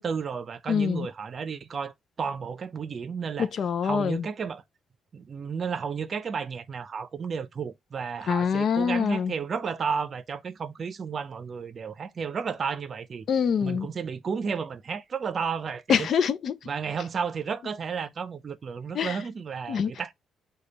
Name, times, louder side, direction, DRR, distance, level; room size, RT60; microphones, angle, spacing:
voice 1, 0.0-3.5 3.8-4.6 5.1-13.3 13.6-16.1 16.6-20.1, right 6 dB, 45° right, 0.6 m, -32 dB
voice 2, 0.7-1.1 3.4-4.3 8.3-9.3 13.3-13.9 15.9-16.5 18.9-19.2 19.7-19.9, left 7 dB, 60° left, 0.4 m, -25 dB
4.9 x 2.3 x 4.1 m
cardioid pair, 90°, 0 cm